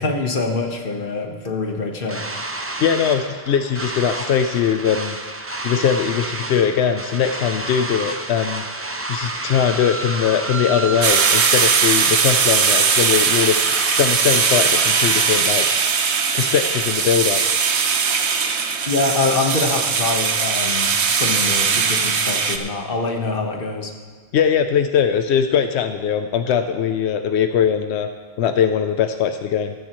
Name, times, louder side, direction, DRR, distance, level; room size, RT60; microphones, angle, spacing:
voice 1, 0.0-2.2 18.9-23.9, left 3 dB, 55° left, 3 dB, 1.5 m, -24 dB
sound 1, 2.1-15.4, right 2 dB, 15° right, 0.5 m, -30 dB
voice 2, 2.8-5.2 5.6-8.6 9.1-13.6 14.0-15.8 16.3-17.4 24.3-28.1 28.4-29.7, left 8 dB, 90° left, 8 dB, 0.9 m, -20 dB
sound 2, 11.0-22.6, right 6 dB, 85° right, 1.1 m, -19 dB
14.5 x 14.0 x 3.1 m, 1.5 s
omnidirectional pair, 1.1 m